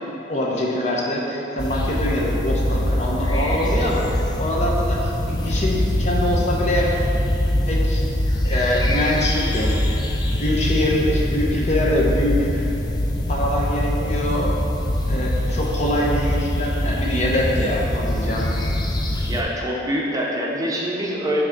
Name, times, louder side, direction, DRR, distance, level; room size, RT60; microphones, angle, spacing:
voice 1, 0.3-4.1 4.4-6.9 7.7-8.1 8.5-9.8 10.4-12.7 13.3-14.5 15.1-18.5, left 1 dB, 40° left, -3 dB, 0.8 m, -24 dB
sound 1, 1.6-19.4, left 1 dB, 25° left, 0.4 m, -23 dB
voice 2, 19.3-21.4, equal, 20° right, -4 dB, 0.7 m, -25 dB
6.3 x 3.4 x 5.1 m, 2.9 s
head